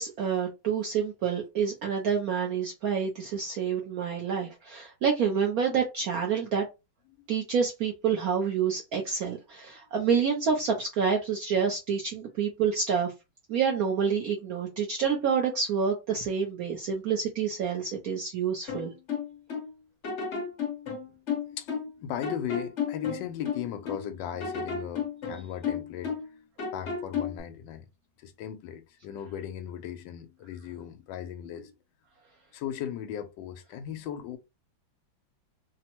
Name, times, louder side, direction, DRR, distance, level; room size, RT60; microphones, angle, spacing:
voice 1, 0.0-6.7 7.3-13.1 13.5-18.9, right 6 dB, 70° right, 0.8 m, -28 dB
sound 1, 18.7-19.7 20.0-22.0 22.2-24.1 24.4-26.3 26.6-27.4, left 6 dB, 45° left, 1.1 m, -33 dB
voice 2, 21.5-26.1 26.7-27.9 28.2-31.7 32.5-34.4, left 10 dB, 75° left, 1.3 m, -37 dB
3.5 x 2.0 x 2.9 m
omnidirectional pair, 2.1 m